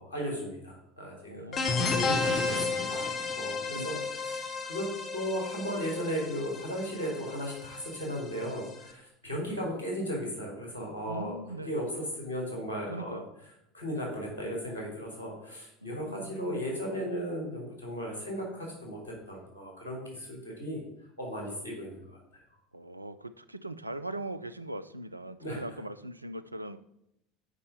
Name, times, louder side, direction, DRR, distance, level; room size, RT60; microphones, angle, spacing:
voice 1, 0.0-4.9 5.1-11.3 11.6-13.2 13.7-20.8 21.2-22.2 25.4-25.6, equal, 75° left, -2 dB, 3.3 m, -36 dB
voice 2, 1.3-2.2 3.7-4.1 11.1-11.8 12.9-13.3 15.8-16.7 22.7-26.8, right 1 dB, 85° right, 12 dB, 0.4 m, -41 dB
sound 1, 1.5-8.9, left 4 dB, 30° left, 1.3 m, -33 dB
7.3 x 5.3 x 6.7 m, 0.82 s
figure-of-eight pair, 70°, 0 cm